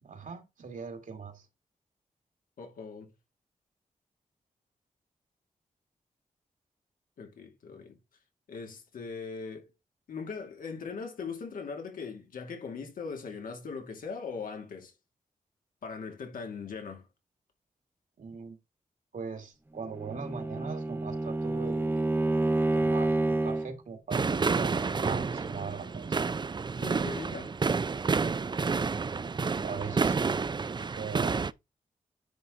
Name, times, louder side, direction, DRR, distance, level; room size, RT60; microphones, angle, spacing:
voice 1, 0.0-1.5 18.2-18.6 19.1-22.1 22.6-26.1 29.6-30.4 31.0-31.4, right 5 dB, 70° right, 2.2 m, -41 dB
voice 2, 2.6-3.1 7.2-8.0 8.5-9.7 10.1-14.9 15.8-17.1 26.8-27.6, left 5 dB, 90° left, 2.5 m, -40 dB
Bowed string instrument, 19.9-23.8, right 2 dB, 15° right, 0.9 m, -28 dB
sound 1, 24.1-31.5, right 4 dB, 35° right, 0.4 m, -29 dB
10.0 x 4.2 x 3.9 m
cardioid pair, 60°, 14 cm